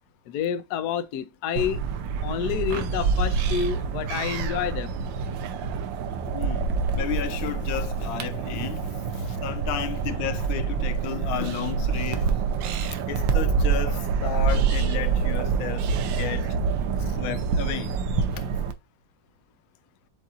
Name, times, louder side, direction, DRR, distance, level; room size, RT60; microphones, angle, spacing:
voice 1, 0.3-1.8 2.2-5.0, left 9 dB, 70° left, 1.0 m, -29 dB
sound 1, 1.6-18.7, right 5 dB, 75° right, 1.3 m, -26 dB
voice 2, 6.3-12.4 12.8-15.9 16.2-16.6 17.0-18.0 18.3-18.5, left 10 dB, 85° left, 1.4 m, -33 dB
7.8 x 2.7 x 2.4 m
omnidirectional pair, 2.2 m